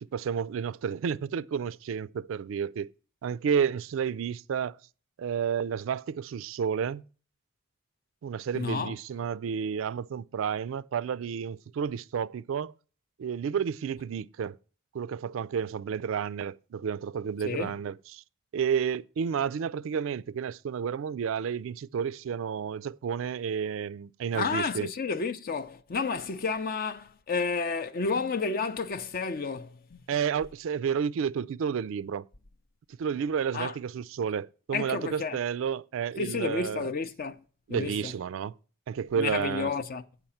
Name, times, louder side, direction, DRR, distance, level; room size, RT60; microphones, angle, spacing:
voice 1, 0.0-2.9 3.2-4.8 5.2-7.0 8.2-12.7 13.2-14.6 14.9-18.2 18.5-24.9 30.1-32.3 33.0-36.9 37.7-38.6 38.9-39.7, right 7 dB, 70° right, 0.3 m, -31 dB
voice 2, 8.5-8.9 17.4-17.7 24.3-30.0 33.5-33.7 34.7-35.4 36.2-37.4 37.7-38.1 39.2-40.0, left 4 dB, 45° left, 0.5 m, -31 dB
7.7 x 4.9 x 7.0 m
head